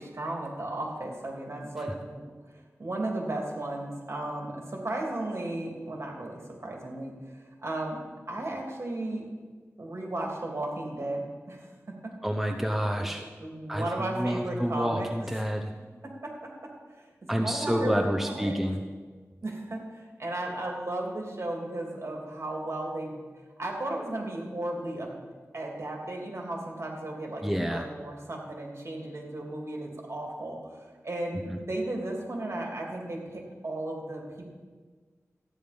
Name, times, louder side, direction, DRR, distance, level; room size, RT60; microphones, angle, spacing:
voice 1, 0.0-2.2 2.8-8.0 8.3-9.2 9.8-11.7 12.0-12.1 13.0-13.1 13.4-15.1 16.2-16.5 16.9-18.6 19.4-23.2 23.6-25.2 25.5-34.5, right 1 dB, 55° right, 0 dB, 3.0 m, -35 dB
voice 2, 12.2-13.3 13.7-15.7 17.3-18.8 27.4-27.9, equal, 5° right, 4 dB, 0.9 m, -28 dB
14.5 x 9.8 x 5.3 m, 1.4 s
wide cardioid pair, 60°, 5 cm